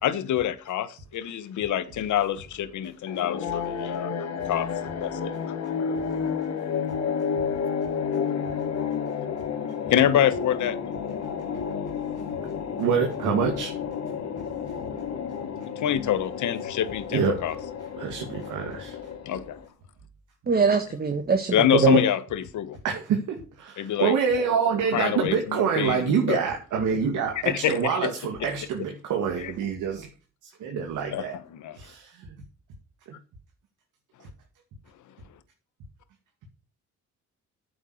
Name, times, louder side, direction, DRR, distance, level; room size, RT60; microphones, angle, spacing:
voice 1, 0.0-4.1 4.4-5.6 5.8-5.9 9.9-10.8 15.8-17.5 19.2-19.6 21.5-22.8 23.8-24.1 24.9-26.4 27.3-28.1 29.4-29.5 31.1-31.8, left 11 dB, 75° left, 1.4 m, -26 dB
sound 1, 3.1-19.6, left 6 dB, 60° left, 2.2 m, -31 dB
voice 2, 12.8-13.7 17.1-17.4 18.0-19.0 22.8-30.1 30.6-31.4 31.7-32.3, right 6 dB, 80° right, 2.5 m, -26 dB
voice 3, 20.5-21.5 21.8-22.0, right 5 dB, 30° right, 1.6 m, -21 dB
9.1 x 7.9 x 6.5 m
cardioid pair, 90°, 30 cm